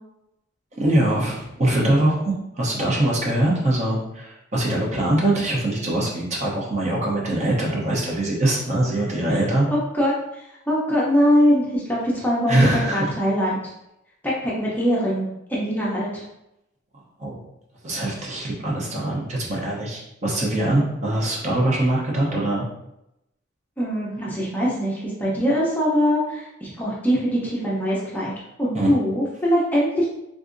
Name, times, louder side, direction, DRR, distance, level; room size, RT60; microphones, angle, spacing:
voice 1, 0.8-9.7 12.5-13.0 17.2-17.4 17.8-22.6 28.7-28.9, right 1 dB, 35° right, -3 dB, 0.7 m, -22 dB
voice 2, 9.7-13.6 14.4-16.2 23.8-28.3 28.6-30.1, equal, 10° left, -6 dB, 0.6 m, -22 dB
3.6 x 2.6 x 2.5 m, 0.85 s
head